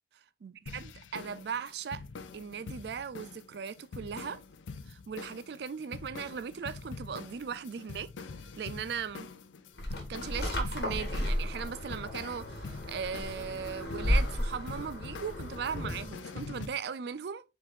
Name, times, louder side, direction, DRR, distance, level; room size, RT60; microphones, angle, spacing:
voice 1, 0.4-2.0 2.3-4.4 4.9-8.1 8.6-9.3 10.1-17.4, right 7 dB, 60° right, 0.3 m, -38 dB
sound 1, 0.7-16.7, left 4 dB, 90° left, 0.5 m, -45 dB
sound 2, 9.8-16.1, left 1 dB, 60° left, 1.3 m, -33 dB
4.6 x 4.3 x 2.4 m
head